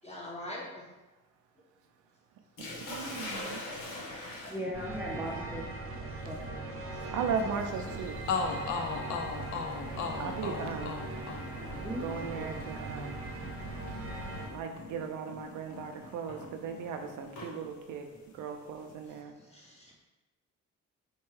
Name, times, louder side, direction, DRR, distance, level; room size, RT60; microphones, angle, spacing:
voice 1, 0.0-0.9 6.8-7.1 19.3-20.0, left 1 dB, 20° left, -4 dB, 1.0 m, -44 dB
Sink (filling or washing), 2.6-12.5 13.6-13.9 14.5-14.6 16.0-17.5, left 1 dB, 90° left, 1.0 m, -45 dB
voice 2, 2.6-3.6 7.1-8.2 10.2-11.0 12.0-13.2 14.5-18.1 18.3-19.3, right 6 dB, 80° right, 5 dB, 0.5 m, -37 dB
voice 3, 4.5-6.4 8.4-8.5 11.8-12.0 12.3-12.5, equal, 5° right, -4 dB, 0.5 m, -39 dB
sound 1, 4.7-14.5, right 2 dB, 45° right, 0.7 m, -40 dB
sound 2, 7.9-8.0 8.3-16.1 16.4-17.6, left 5 dB, 70° left, 0.5 m, -38 dB
4.4 x 2.2 x 3.1 m, 1.1 s
cardioid pair, 90°, 30 cm